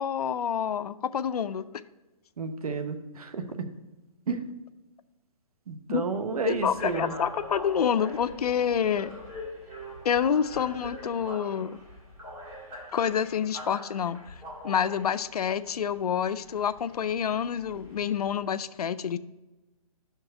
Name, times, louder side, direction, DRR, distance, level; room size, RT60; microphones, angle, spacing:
voice 1, 0.0-1.7 5.9-6.0 6.5-9.1 10.0-11.8 12.9-14.2 14.6-19.2, left 8 dB, 90° left, 15 dB, 0.4 m, -28 dB
voice 2, 2.4-3.4 4.3-4.5 5.7-7.1, right 5 dB, 75° right, 8 dB, 1.0 m, -31 dB
sound 1, 6.5-18.4, equal, 15° right, 2.1 m, -43 dB
6.4 x 4.5 x 6.6 m, 1.1 s
hypercardioid pair, 160°, 19 cm